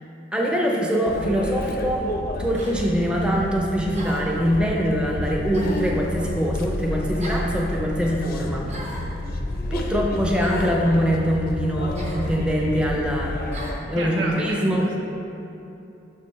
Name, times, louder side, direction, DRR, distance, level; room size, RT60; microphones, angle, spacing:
voice 1, 0.3-2.1 2.4-8.7 9.7-13.4 13.9-14.9, equal, 5° right, -1 dB, 0.5 m, -23 dB
sound 1, 1.1-13.8, left 1 dB, 55° left, 0.4 m, -30 dB
sound 2, 1.1-1.3 2.5-2.8 3.9-4.4 5.5-5.9 7.2-7.5 8.7-9.1 10.4-10.8 11.9-12.2 13.5-13.8, right 1 dB, 35° right, 0.8 m, -38 dB
voice 2, 14.0-15.0, right 2 dB, 80° right, -1 dB, 0.9 m, -31 dB
6.0 x 5.4 x 3.1 m, 2.9 s
head